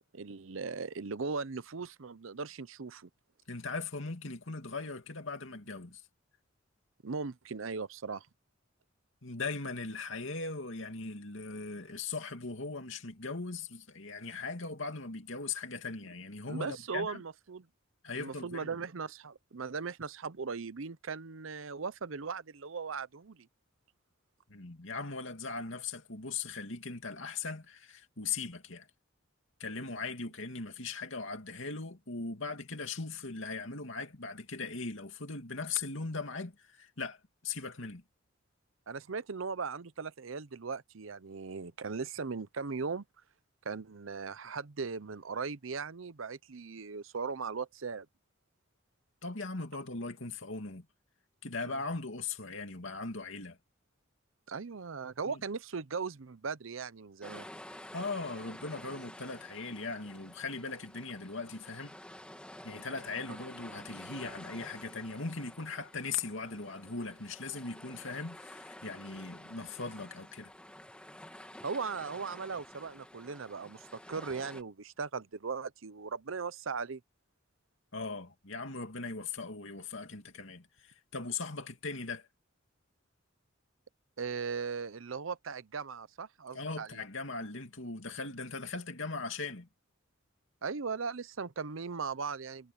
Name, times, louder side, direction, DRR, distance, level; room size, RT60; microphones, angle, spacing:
voice 1, 0.1-3.1 7.0-8.3 16.5-17.7 18.2-23.5 38.9-43.0 43.6-48.1 51.6-51.8 54.5-57.5 71.6-77.0 84.2-87.0 90.6-92.7, right 5 dB, 70° right, 0.7 m, -38 dB
voice 2, 3.5-6.0 9.2-17.2 18.0-18.7 24.5-28.9 29.6-38.0 49.2-50.9 51.4-53.6 55.3-55.4 57.9-61.9 62.6-70.5 77.9-82.3 86.5-89.7, left 4 dB, 65° left, 2.6 m, -39 dB
sound 1, 57.2-74.6, left 1 dB, 5° left, 2.3 m, -50 dB
head